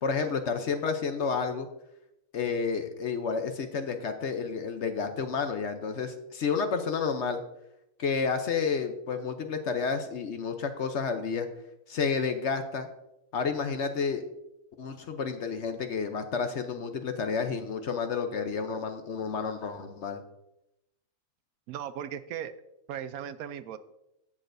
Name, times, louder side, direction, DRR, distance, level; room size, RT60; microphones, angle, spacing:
voice 1, 0.0-1.7 2.3-7.4 8.0-11.5 11.9-12.9 13.3-14.2 14.8-20.2, left 5 dB, 55° left, 7 dB, 0.9 m, -30 dB
voice 2, 21.7-22.5 22.9-23.8, right 9 dB, 75° right, 13 dB, 1.0 m, -37 dB
16.0 x 6.5 x 2.6 m, 0.87 s
omnidirectional pair, 1.6 m